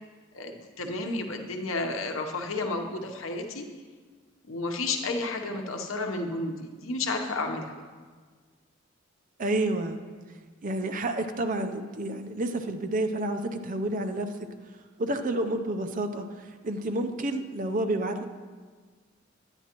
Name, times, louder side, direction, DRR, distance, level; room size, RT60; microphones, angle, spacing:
voice 1, 0.3-3.7 4.5-7.8, left 2 dB, 80° left, 4 dB, 0.9 m, -32 dB
voice 2, 9.4-10.0 10.6-14.3 15.0-16.2 16.6-18.3, right 1 dB, 40° right, 7 dB, 0.6 m, -29 dB
10.5 x 9.7 x 3.0 m, 1.5 s
head